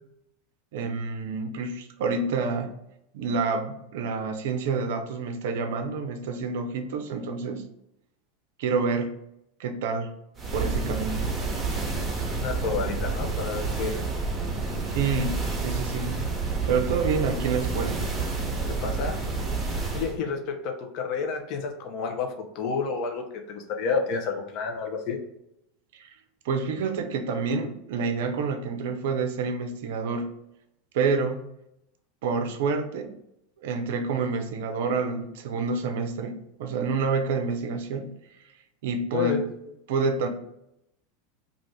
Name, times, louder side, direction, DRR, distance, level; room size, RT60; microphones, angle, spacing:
voice 1, 0.7-2.7 3.1-7.7 8.6-9.2 9.6-10.1 10.5-11.3 12.2-12.3 14.9-16.2 16.7-18.0 25.9-26.1 26.4-30.3 30.9-31.4 32.2-33.1 33.6-38.1 38.8-39.5 39.9-40.3, right 4 dB, 70° right, 6 dB, 0.4 m, -28 dB
sound 1, 10.4-20.2, right 3 dB, 25° right, 0.8 m, -29 dB
voice 2, 12.3-13.9 18.7-19.2 19.9-25.2 39.1-39.4, left 5 dB, 55° left, 4 dB, 0.6 m, -30 dB
2.5 x 2.4 x 3.3 m, 0.81 s
hypercardioid pair, 90°, 0 cm